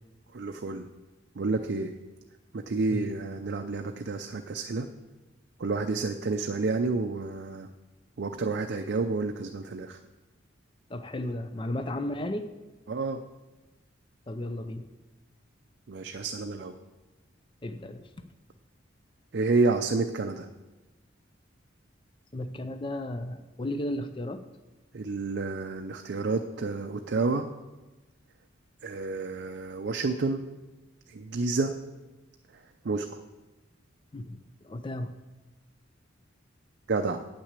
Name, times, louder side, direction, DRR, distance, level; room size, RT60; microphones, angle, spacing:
voice 1, 0.3-0.9 1.4-1.9 2.5-4.9 5.6-7.7 8.2-10.0 12.9-13.2 15.9-16.7 19.3-20.5 24.9-27.5 28.8-30.4 31.1-31.7 32.5-32.6 32.8-33.2 36.9-37.2, right 3 dB, 55° right, 6 dB, 0.5 m, -29 dB
voice 2, 10.9-12.5 14.3-14.9 17.6-18.1 22.3-24.5 34.1-35.1, left 1 dB, 25° left, 9 dB, 0.4 m, -34 dB
8.3 x 6.1 x 8.2 m, 1.1 s
head